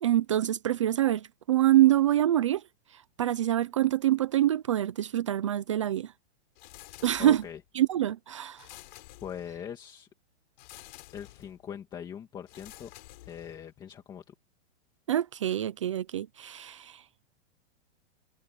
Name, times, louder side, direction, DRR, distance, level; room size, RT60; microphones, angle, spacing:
voice 1, 0.0-2.6 3.2-6.1 7.0-7.4 7.8-8.7 15.1-17.0, right 13 dB, 30° right, 0.4 m, -25 dB
sound 1, 6.5-7.7 8.5-9.8 10.6-11.6 12.5-13.8, left 18 dB, 40° left, 6.2 m, -50 dB
voice 2, 7.2-7.6 9.2-10.1 11.1-12.9 13.3-14.3, left 8 dB, 10° left, 2.0 m, -41 dB
supercardioid pair, 180°, 34 cm